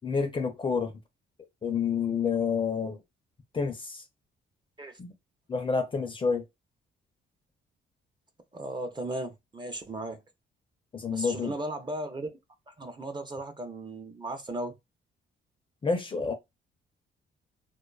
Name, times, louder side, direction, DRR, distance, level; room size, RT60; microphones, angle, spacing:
voice 1, 0.0-0.9 1.6-3.0 3.5-4.0 5.0-5.1 5.5-6.4 10.9-11.5 15.8-16.3, left 5 dB, 25° left, 0.5 m, -28 dB
voice 2, 8.5-10.2 11.1-12.3 12.7-14.7, right 2 dB, 20° right, 0.5 m, -36 dB
2.4 x 2.2 x 2.3 m
cardioid pair, 90°, 20 cm